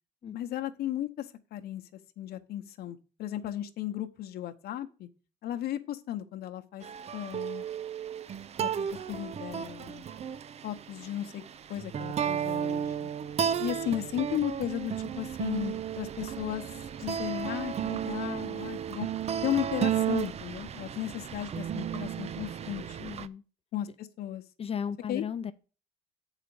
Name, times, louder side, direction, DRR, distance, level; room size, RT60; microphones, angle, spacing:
voice 1, 0.3-1.8 2.2-5.1 5.4-6.8 7.1-7.6 8.6-10.0 10.6-11.4 11.7-13.1 13.6-16.6 17.0-19.1 19.4-23.0 23.7-24.4 25.1-25.2, left 12 dB, 70° left, 0.9 m, -35 dB
sound 1, 6.8-23.3, right 9 dB, 40° right, 0.5 m, -34 dB
voice 2, 23.0-23.4 24.6-25.5, left 7 dB, 35° left, 0.5 m, -35 dB
7.3 x 5.0 x 6.9 m
cardioid pair, 110°, 17 cm